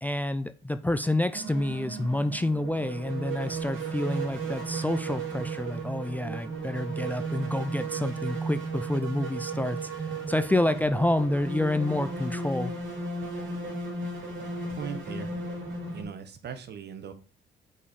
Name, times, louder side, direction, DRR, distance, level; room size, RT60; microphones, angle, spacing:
voice 1, 0.0-12.7, left 1 dB, 10° left, 0.4 m, -28 dB
sound 1, 1.3-16.0, right 3 dB, 75° right, 3.1 m, -35 dB
voice 2, 14.7-15.4 15.9-17.1, right 7 dB, 55° right, 1.1 m, -39 dB
5.5 x 4.4 x 4.9 m
cardioid pair, 90°, 20 cm